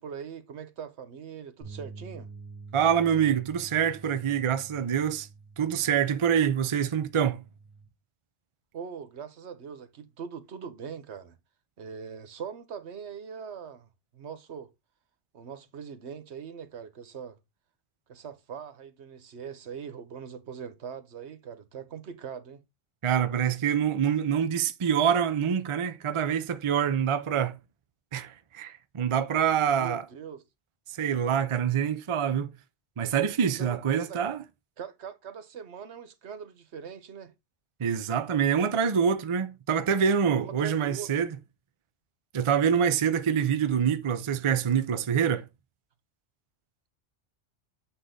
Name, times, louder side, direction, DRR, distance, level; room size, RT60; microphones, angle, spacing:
voice 1, 0.0-2.3 8.7-11.4 11.8-14.7 15.3-17.4 18.1-22.6 29.7-30.4 33.6-34.2 34.8-37.3 40.3-41.1, right 7 dB, 75° right, 1.1 m, -41 dB
sound 1, 1.6-7.9, right 4 dB, 15° left, 3.1 m, -48 dB
voice 2, 2.7-5.3 5.6-7.4 23.0-27.6 28.1-30.0 30.9-32.5 33.0-34.4 37.8-41.3 42.3-45.5, right 8 dB, 40° right, 0.5 m, -26 dB
8.0 x 4.0 x 3.8 m
omnidirectional pair, 1.2 m